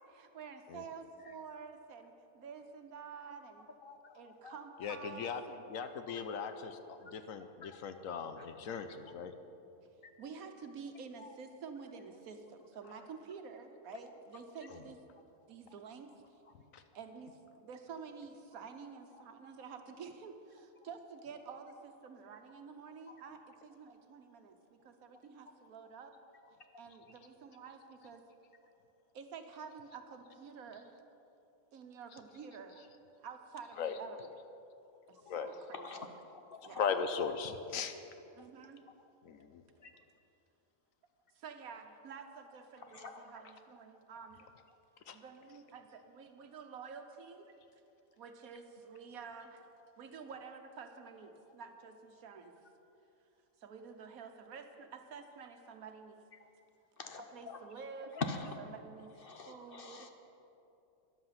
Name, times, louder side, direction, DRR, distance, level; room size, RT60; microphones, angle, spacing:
voice 1, 0.0-3.7 4.1-5.7 10.2-15.0 15.5-16.1 16.9-26.1 26.8-28.2 29.1-31.0 31.7-32.9 33.2-34.3 35.1-36.1 36.6-36.9 38.3-38.8 41.3-44.5 45.1-47.6 48.2-49.7 50.0-52.6 53.6-56.2 57.2-58.2 58.6-60.1, right 5 dB, 80° right, 6 dB, 1.4 m, -49 dB
voice 2, 4.8-5.4 5.7-9.3 14.7-14.8 16.7-16.8 33.8-34.0 35.3-35.5 36.8-38.0 39.2-39.6 45.1-45.2, left 6 dB, 70° left, 9 dB, 1.1 m, -38 dB
voice 3, 35.7-36.1 36.3-36.9 37.2-37.3 39.8-39.9 42.9-43.2 57.0-57.6 58.2-58.5 59.2-60.1, left 4 dB, 45° left, 6 dB, 0.9 m, -43 dB
13.0 x 10.5 x 5.8 m, 2.8 s
omnidirectional pair, 1.5 m